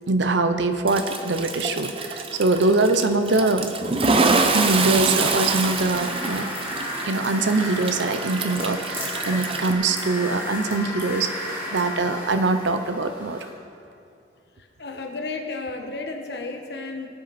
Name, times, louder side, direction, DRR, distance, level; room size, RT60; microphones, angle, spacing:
voice 1, 0.1-3.8 4.5-6.5 7.1-13.5, right 3 dB, 90° right, 9 dB, 0.7 m, -23 dB
Toilet flush, 0.9-9.7, right 3 dB, 30° right, 0.7 m, -26 dB
sound 1, 5.3-13.5, left 1 dB, 15° right, 2.4 m, -33 dB
voice 2, 14.8-17.1, left 3 dB, 70° left, 3 dB, 1.3 m, -32 dB
18.5 x 8.0 x 4.2 m, 2.5 s
head